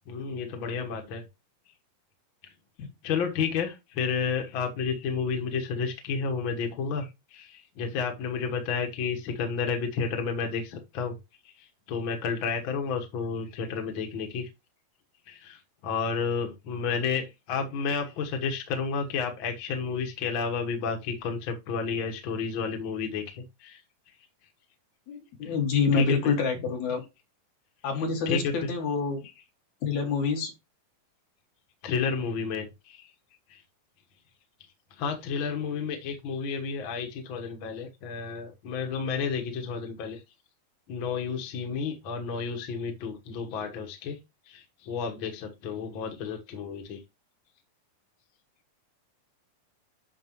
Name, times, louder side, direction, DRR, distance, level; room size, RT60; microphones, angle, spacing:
voice 1, 0.1-1.3 2.4-2.5 3.0-11.2 11.4-14.5 15.3-23.8 24.1-24.2 25.4-25.5 25.9-26.3 28.2-28.7 31.8-33.1 33.5-33.6 34.9-40.2 40.9-44.2 44.5-47.0, left 5 dB, 75° left, 1.1 m, -31 dB
voice 2, 25.1-27.0 27.8-29.3 29.8-30.5, left 5 dB, 55° left, 3.0 m, -27 dB
9.3 x 6.1 x 3.0 m
omnidirectional pair, 4.2 m